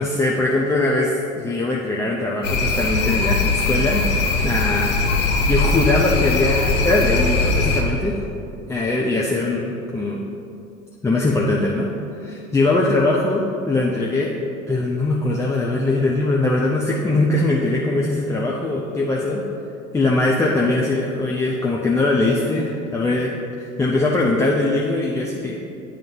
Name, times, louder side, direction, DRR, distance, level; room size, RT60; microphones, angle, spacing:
voice 1, 0.0-4.2 4.4-5.0 5.5-8.1 8.7-10.2 11.0-11.9 12.2-14.3 14.7-19.4 19.9-25.6, left 2 dB, 10° left, -3 dB, 0.4 m, -21 dB
sound 1, 2.4-7.8, left 3 dB, 70° left, 1.0 m, -20 dB
8.9 x 3.5 x 5.4 m, 2.6 s
figure-of-eight pair, 75°, 40 cm